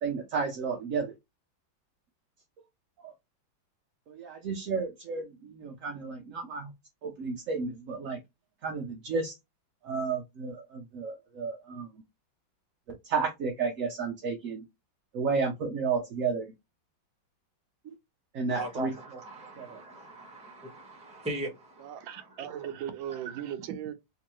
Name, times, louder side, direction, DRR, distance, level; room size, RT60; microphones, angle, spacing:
voice 1, 0.0-1.1 3.0-3.1 4.1-6.7 7.0-8.2 8.6-9.3 9.8-11.9 13.0-14.6 15.1-16.5 17.9-18.0 18.3-18.9 19.6-19.8, right 5 dB, 65° right, 0.8 m, -32 dB
voice 2, 18.5-22.3, right 1 dB, 5° right, 0.8 m, -39 dB
voice 3, 21.8-23.9, right 10 dB, 80° right, 1.4 m, -37 dB
3.5 x 3.0 x 3.0 m
omnidirectional pair, 2.1 m